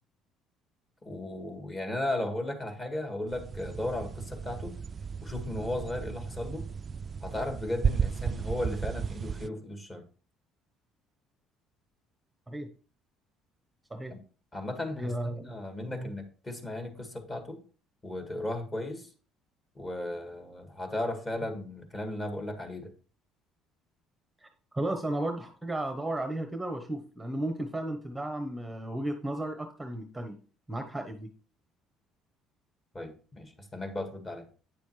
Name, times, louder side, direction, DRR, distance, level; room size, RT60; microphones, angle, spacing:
voice 1, 1.0-4.8 5.2-6.6 7.2-10.0 14.1-14.2 14.5-15.1 15.4-17.6 18.0-19.1 19.8-22.9 32.9-34.5, left 1 dB, 25° left, 5 dB, 1.9 m, -35 dB
sound 1, 3.3-9.5, right 6 dB, 35° right, 0.3 m, -34 dB
voice 2, 15.0-15.5 15.9-16.1 24.7-30.4 30.7-31.3, right 1 dB, 5° right, 6 dB, 0.9 m, -34 dB
9.2 x 6.9 x 3.2 m, 0.39 s
cardioid pair, 105°, 0 cm